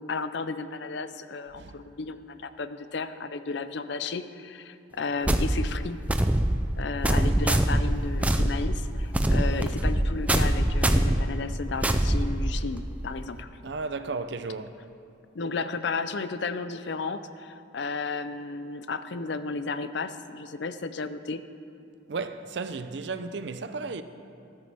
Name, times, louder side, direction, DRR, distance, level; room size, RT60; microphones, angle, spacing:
voice 1, 0.0-6.0 6.8-13.5 15.3-21.4, left 4 dB, 60° left, 0.5 m, -33 dB
sound 1, 5.3-12.9, right 1 dB, 5° right, 0.3 m, -24 dB
voice 2, 13.6-14.8 22.1-24.0, right 4 dB, 60° right, 0.5 m, -34 dB
14.0 x 13.5 x 3.5 m
head